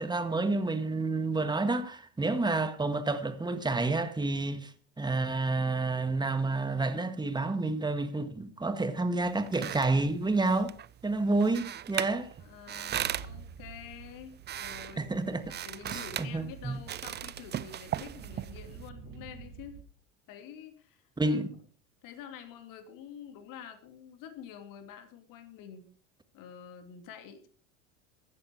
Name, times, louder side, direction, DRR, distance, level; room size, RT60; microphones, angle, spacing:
voice 1, 0.0-10.8 11.0-12.3 15.0-15.5 15.9-16.8 21.2-21.6, right 3 dB, 10° right, 1.8 m, -29 dB
sound 1, 9.2-18.9, right 10 dB, 25° right, 0.6 m, -39 dB
voice 2, 12.4-15.1 15.6-19.8 20.3-21.4 22.0-25.9 26.3-27.5, left 8 dB, 55° left, 2.8 m, -48 dB
sound 2, 12.9-19.8, right 7 dB, 60° right, 2.5 m, -49 dB
15.0 x 11.0 x 4.8 m
hypercardioid pair, 80°, 38 cm